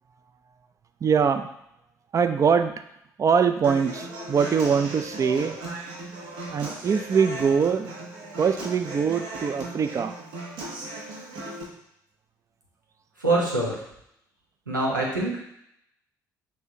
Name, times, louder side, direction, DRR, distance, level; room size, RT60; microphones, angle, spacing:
voice 1, 1.0-1.5 2.1-2.7 3.2-5.6 6.5-7.9 8.4-10.1, right 6 dB, 30° right, 9 dB, 0.4 m, -23 dB
Human voice / Acoustic guitar, 3.6-11.6, right 2 dB, 60° right, 1.0 m, -37 dB
voice 2, 13.2-13.8 14.7-15.5, right 2 dB, 85° right, -3 dB, 0.8 m, -24 dB
5.6 x 3.2 x 2.8 m, 0.77 s
figure-of-eight pair, 50°, 10 cm